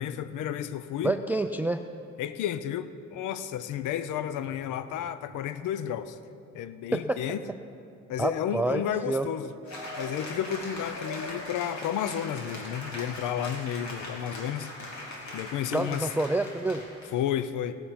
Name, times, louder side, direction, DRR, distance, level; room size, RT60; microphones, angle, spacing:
voice 1, 0.0-1.1 2.2-6.2 6.5-7.4 8.1-9.5 10.0-14.7 15.3-16.1 17.1-17.8, left 10 dB, 80° left, 13 dB, 0.6 m, -32 dB
voice 2, 1.0-1.8 6.9-7.2 8.2-9.3 15.7-16.8, right 2 dB, 5° right, 9 dB, 0.3 m, -28 dB
Cheering / Applause, 9.6-17.2, left 1 dB, 65° left, 2.7 m, -40 dB
18.0 x 7.0 x 5.7 m, 2.5 s
cardioid pair, 90°, 30 cm